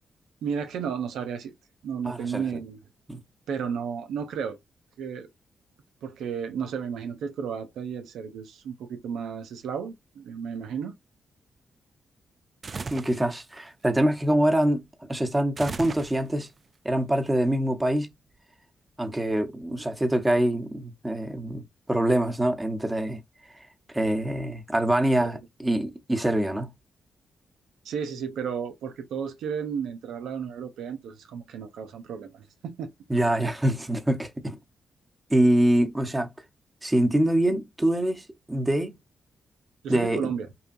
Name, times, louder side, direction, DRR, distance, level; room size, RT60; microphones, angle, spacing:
voice 1, 0.4-1.5 1.8-2.8 3.5-4.6 5.0-5.3 6.0-11.0 25.2-25.3 27.8-32.9 39.8-40.5, right 7 dB, 85° right, 0.6 m, -33 dB
voice 2, 2.0-2.4 3.1-3.2 12.9-16.5 16.8-18.2 19.0-23.2 23.9-26.7 33.1-34.6 35.3-36.3 36.8-39.0 39.9-40.3, right 1 dB, 15° right, 1.0 m, -25 dB
sound 1, 12.6-13.3 15.6-16.5, right 4 dB, 45° right, 0.4 m, -36 dB
5.5 x 2.3 x 2.6 m
cardioid pair, 60°, 0 cm